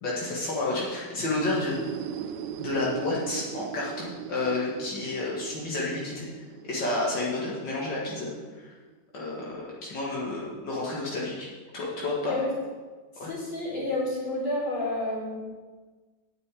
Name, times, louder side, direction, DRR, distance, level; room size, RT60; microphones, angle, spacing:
voice 1, 0.0-1.8 2.6-6.3 6.6-8.3 8.6-8.7 9.1-9.4 9.8-11.5 11.7-12.5 13.2-13.3, left 2 dB, 85° left, -5 dB, 2.6 m, -30 dB
sound 1, 1.4-9.0, right 8 dB, 80° right, 1.3 m, -40 dB
voice 2, 13.1-15.4, left 2 dB, 40° left, -6 dB, 4.2 m, -30 dB
8.8 x 6.6 x 8.4 m, 1.4 s
omnidirectional pair, 1.9 m